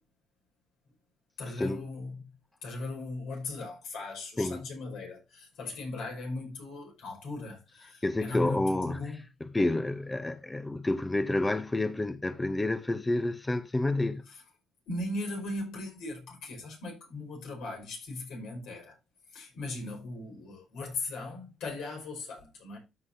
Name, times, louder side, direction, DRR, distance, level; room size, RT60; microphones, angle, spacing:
voice 1, 1.4-2.3 2.6-9.2 14.3-14.4 14.9-19.0 19.3-22.8, left 2 dB, 85° left, 5.3 m, -38 dB
voice 2, 8.0-9.0 9.4-14.2, left 2 dB, 15° left, 0.7 m, -29 dB
13.5 x 5.7 x 2.7 m
cardioid pair, 90°, 0 cm